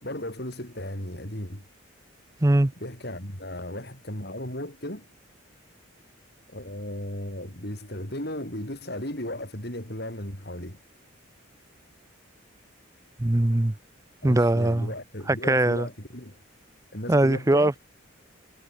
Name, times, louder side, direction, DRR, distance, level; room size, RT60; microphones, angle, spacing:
voice 1, 0.0-1.6 2.8-5.1 6.5-10.8 14.2-16.4 16.9-17.7, left 1 dB, 50° left, 6.2 m, -35 dB
voice 2, 2.4-2.7 13.2-13.7 14.2-14.9 15.3-15.9 17.1-17.8, right 1 dB, 15° right, 0.5 m, -21 dB
head